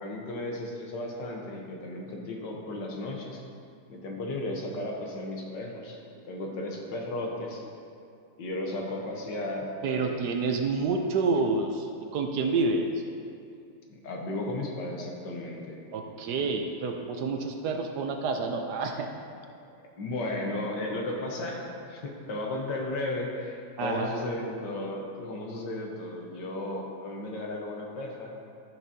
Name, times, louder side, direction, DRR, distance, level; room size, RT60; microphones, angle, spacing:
voice 1, 0.0-3.4 3.9-6.0 6.3-7.6 8.4-10.3 13.9-15.8 20.0-28.3, left 1 dB, 70° left, 0 dB, 1.7 m, -34 dB
voice 2, 9.8-11.9 12.1-12.9 15.9-19.1 23.8-24.2, right 4 dB, 70° right, 4 dB, 1.1 m, -28 dB
14.0 x 6.0 x 2.8 m, 2.4 s
omnidirectional pair, 2.0 m